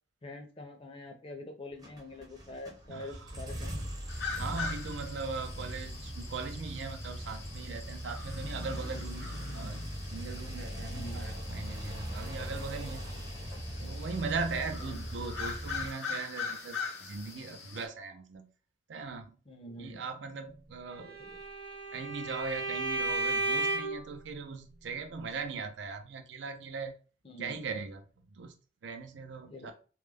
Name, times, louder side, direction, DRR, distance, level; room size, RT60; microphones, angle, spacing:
voice 1, 0.2-3.8 9.4-9.7 10.8-11.3 14.8-15.0 19.5-20.0 20.9-21.4 27.2-27.6 29.5-29.7, left 1 dB, 30° left, 0.4 m, -46 dB
sound 1, 1.8-15.9, equal, 20° right, 0.5 m, -40 dB
voice 2, 2.9-3.3 4.4-9.8 10.1-13.1 13.8-18.5 18.9-19.4 19.8-21.1 21.9-27.0 27.4-28.0 28.3-28.5 28.8-29.7, right 4 dB, 90° right, 0.4 m, -39 dB
sound 2, 4.1-17.9, left 5 dB, 80° left, 0.7 m, -43 dB
Bowed string instrument, 21.0-24.1, right 2 dB, 55° right, 0.8 m, -33 dB
2.3 x 2.0 x 3.2 m
head